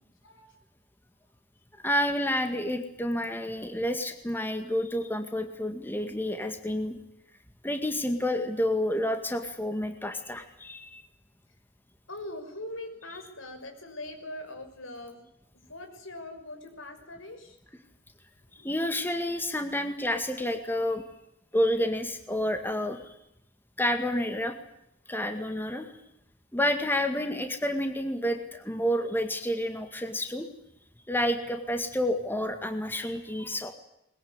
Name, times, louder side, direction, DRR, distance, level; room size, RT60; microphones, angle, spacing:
voice 1, 0.2-0.6 12.1-15.2 15.7-17.6 18.6-18.7, left 1 dB, 80° left, 6 dB, 6.1 m, -42 dB
voice 2, 1.8-7.0 7.6-11.0 18.5-21.0 21.5-23.1 23.8-24.5 25.1-25.9 26.5-30.5 31.1-33.7, left 1 dB, 10° left, 6 dB, 2.0 m, -29 dB
22.5 x 21.5 x 9.7 m, 0.80 s
head